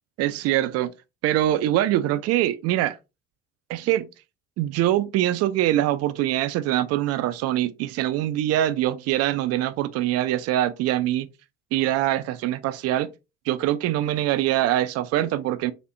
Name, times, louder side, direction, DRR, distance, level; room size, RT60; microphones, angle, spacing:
voice 1, 0.2-0.9 1.2-3.0 3.7-4.1 4.6-11.3 11.7-13.1 13.5-15.7, right 13 dB, 45° right, 0.4 m, -23 dB
4.2 x 3.3 x 2.6 m
figure-of-eight pair, 60°, 37 cm